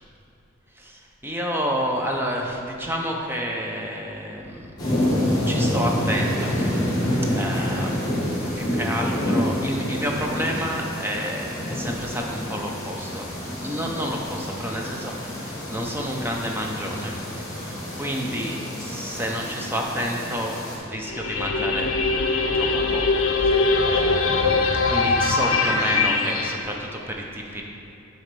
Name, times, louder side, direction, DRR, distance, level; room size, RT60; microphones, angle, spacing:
voice 1, 1.2-4.7 5.4-6.8 7.3-8.0 8.5-13.3 13.6-20.6 20.8-21.9 22.5-27.6, equal, 10° right, 0 dB, 0.6 m, -30 dB
sound 1, 4.8-20.8, left 1 dB, 20° left, 1.5 m, -27 dB
sound 2, 21.0-26.6, left 3 dB, 70° left, 0.6 m, -22 dB
7.5 x 4.1 x 5.2 m, 2.9 s
head